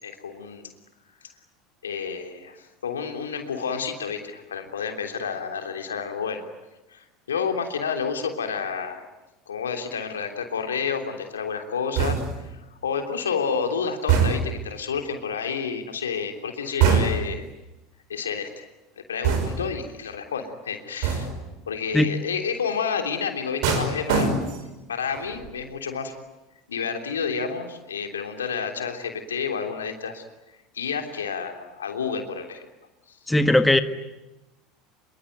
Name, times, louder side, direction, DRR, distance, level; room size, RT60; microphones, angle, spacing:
voice 1, 0.0-0.7 1.8-6.4 6.9-9.1 9.5-17.4 18.1-18.7 19.1-21.3 21.7-24.4 24.9-26.1 26.7-30.2 30.7-32.6 33.1-33.2, left 6 dB, 90° left, 4 dB, 3.3 m, -30 dB
sound 1, 12.0-12.5 14.1-14.7 16.8-17.4 19.2-19.8 21.0-21.5 23.6-24.8 25.1-25.5, right 6 dB, 65° right, 5.8 m, -23 dB
voice 2, 33.3-33.8, left 1 dB, 5° left, 9 dB, 1.7 m, -18 dB
26.5 x 23.5 x 9.4 m, 1.0 s
hypercardioid pair, 85°, 0 cm